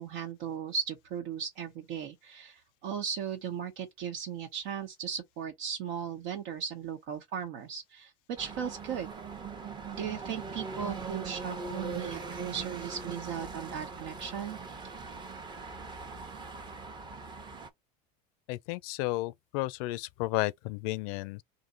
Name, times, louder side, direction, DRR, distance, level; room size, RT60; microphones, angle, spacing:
voice 1, 0.0-9.1 9.9-14.6, right 7 dB, 65° right, 1.1 m, -37 dB
sound 1, 8.4-17.7, right 4 dB, 20° right, 0.9 m, -41 dB
voice 2, 18.5-21.4, left 19 dB, 65° left, 0.5 m, -33 dB
3.8 x 2.8 x 3.9 m
supercardioid pair, 140°, 20 cm